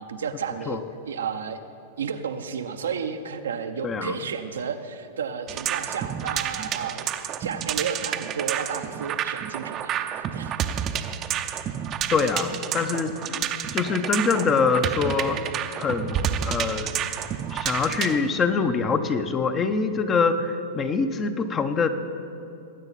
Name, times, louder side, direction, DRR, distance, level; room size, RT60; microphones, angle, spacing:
voice 1, 0.0-1.6 2.0-10.6, right 6 dB, 80° right, 7 dB, 0.7 m, -32 dB
voice 2, 3.8-4.1 12.1-15.4 15.8-16.9 17.5-21.9, left 5 dB, 25° left, 9 dB, 0.8 m, -24 dB
sound 1, 5.5-18.2, right 9 dB, 35° right, 0.6 m, -30 dB
20.0 x 8.9 x 4.1 m, 2.7 s
hypercardioid pair, 105°, 0 cm